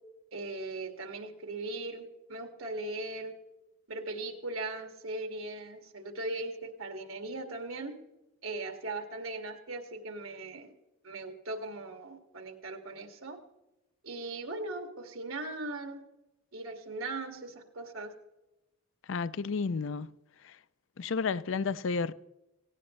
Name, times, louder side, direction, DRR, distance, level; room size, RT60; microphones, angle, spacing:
voice 1, 0.3-3.3 3.9-7.9 8.4-10.7 11.0-13.4 14.0-16.0 16.5-18.1, right 2 dB, 85° right, 2.2 m, -39 dB
voice 2, 19.1-20.1 21.0-22.1, left 5 dB, 70° left, 0.5 m, -31 dB
17.5 x 17.5 x 3.2 m
head